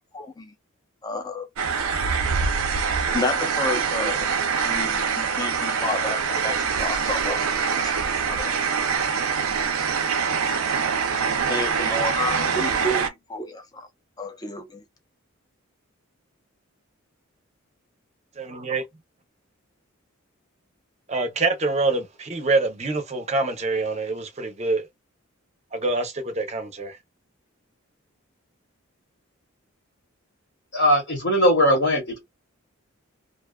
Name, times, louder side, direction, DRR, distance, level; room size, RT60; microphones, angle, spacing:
voice 1, 0.1-0.5 1.0-1.5 3.1-7.4 7.7-8.6 11.5-13.9 14.2-14.8, left 2 dB, 20° left, 0.4 m, -31 dB
sound 1, 1.6-13.1, right 6 dB, 85° right, 0.5 m, -24 dB
voice 2, 18.5-18.8 21.1-24.9 25.7-27.0, right 3 dB, 30° right, 0.6 m, -25 dB
voice 3, 30.7-32.2, equal, 55° left, 0.9 m, -19 dB
2.5 x 2.3 x 2.2 m
head